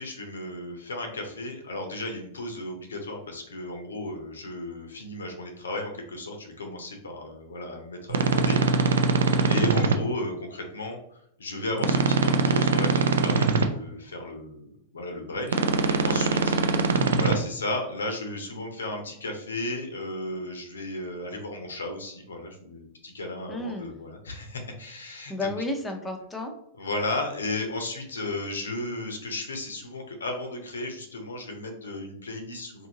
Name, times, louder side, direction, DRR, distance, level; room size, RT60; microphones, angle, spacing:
voice 1, 0.0-8.6 9.5-16.5 17.1-25.5 26.8-32.9, left 2 dB, 85° left, 4 dB, 0.6 m, -34 dB
sound 1, 8.1-9.9 11.8-13.6 15.5-17.3, right 4 dB, 75° right, 0.3 m, -22 dB
voice 2, 16.3-16.8 23.5-23.9 25.3-26.5, left 2 dB, 15° left, 3 dB, 0.6 m, -33 dB
2.7 x 2.6 x 2.8 m, 0.73 s
hypercardioid pair, 100°, 0 cm